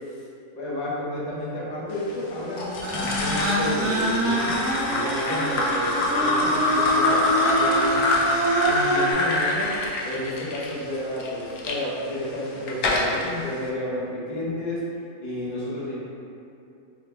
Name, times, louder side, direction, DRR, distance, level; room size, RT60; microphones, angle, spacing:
voice 1, 0.5-4.6 4.9-8.3 8.6-9.8 10.0-14.8 15.2-16.0, left 1 dB, 40° left, -7 dB, 0.7 m, -31 dB
sound 1, 2.6-11.8 12.3-13.3, left 2 dB, 80° left, 1.1 m, -25 dB
sound 2, 2.8-9.1, right 1 dB, 60° right, 0.8 m, -26 dB
4.6 x 3.2 x 2.3 m, 2.6 s
omnidirectional pair, 1.6 m